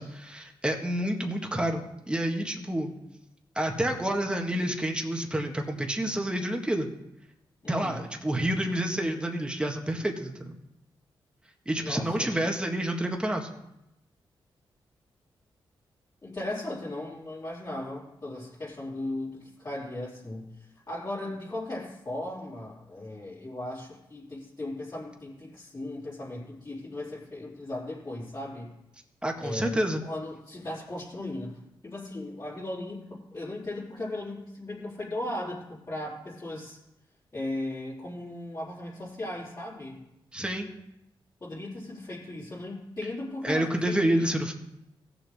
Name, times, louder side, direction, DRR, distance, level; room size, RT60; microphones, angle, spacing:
voice 1, 0.0-2.9 3.6-6.9 7.7-10.6 11.7-13.5 29.2-30.0 40.3-40.7 43.4-44.5, right 1 dB, 10° right, 2 dB, 1.7 m, -29 dB
voice 2, 7.6-8.1 11.8-12.3 16.2-28.7 29.4-36.8 37.3-40.0 41.4-44.3, left 1 dB, 35° left, -10 dB, 4.0 m, -37 dB
16.5 x 6.9 x 3.6 m, 0.86 s
cardioid pair, 75°, 9 cm